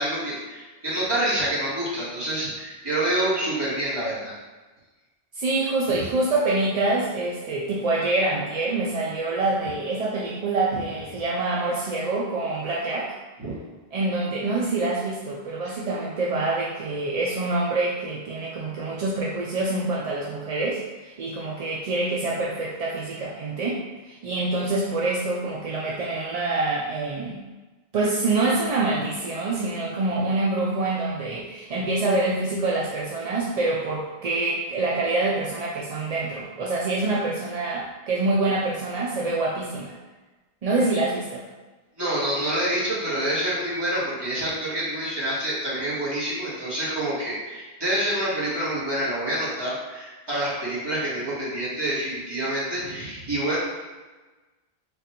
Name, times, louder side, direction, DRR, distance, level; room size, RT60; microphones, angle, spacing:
voice 1, 0.0-4.3 5.9-6.0 13.4-13.6 15.6-15.8 42.0-53.6, right 1 dB, 25° right, -9 dB, 1.5 m, -27 dB
voice 2, 5.3-13.2 13.9-27.4 27.9-40.0 40.6-41.4, right 2 dB, 50° right, -4 dB, 0.4 m, -26 dB
3.7 x 2.5 x 4.3 m, 1.2 s
omnidirectional pair, 1.0 m